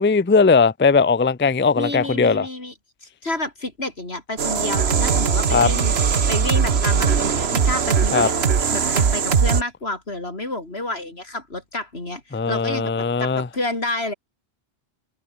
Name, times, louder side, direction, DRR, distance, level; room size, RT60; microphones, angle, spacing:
voice 1, 0.0-2.5 5.5-5.7 8.1-8.3 12.3-13.5, left 4 dB, 15° left, 0.5 m, -18 dB
voice 2, 1.8-2.7 3.0-5.9 6.3-14.1, left 2 dB, 85° left, 5.0 m, -30 dB
sound 1, 4.4-9.6, right 6 dB, 90° right, 1.5 m, -20 dB
omnidirectional pair, 1.0 m